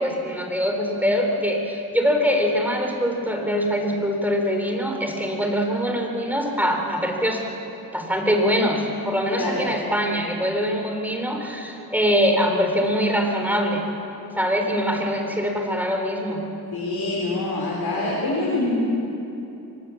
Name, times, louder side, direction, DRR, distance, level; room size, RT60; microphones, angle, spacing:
voice 1, 0.0-7.4 7.9-13.8 14.4-16.4, equal, 5° right, 2 dB, 4.1 m, -23 dB
voice 2, 9.3-9.7 16.7-18.7, left 2 dB, 80° left, -4 dB, 4.1 m, -25 dB
24.0 x 20.5 x 7.3 m, 2.9 s
wide cardioid pair, 75°, 37 cm